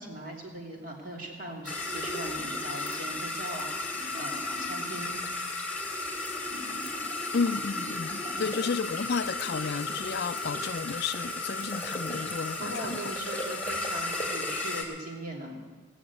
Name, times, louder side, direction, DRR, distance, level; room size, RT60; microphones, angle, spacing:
voice 1, 0.0-5.2 8.3-8.5 12.6-15.7, right 1 dB, 45° right, 3.0 m, -40 dB
sound 1, 1.7-14.8, left 2 dB, 10° left, 2.5 m, -34 dB
voice 2, 7.3-13.0, left 5 dB, 55° left, 0.4 m, -32 dB
18.0 x 7.2 x 9.6 m
head